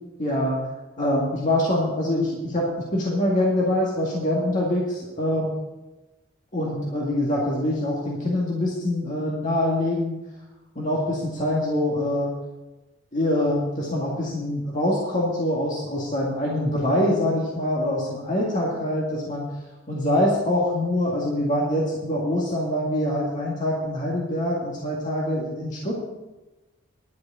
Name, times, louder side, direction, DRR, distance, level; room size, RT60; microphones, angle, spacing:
voice 1, 0.2-0.7 1.0-5.6 6.5-10.2 10.8-12.4 13.1-19.5 19.9-26.0, left 1 dB, 40° left, -4 dB, 2.1 m, -24 dB
11.0 x 6.6 x 8.3 m, 1.1 s
head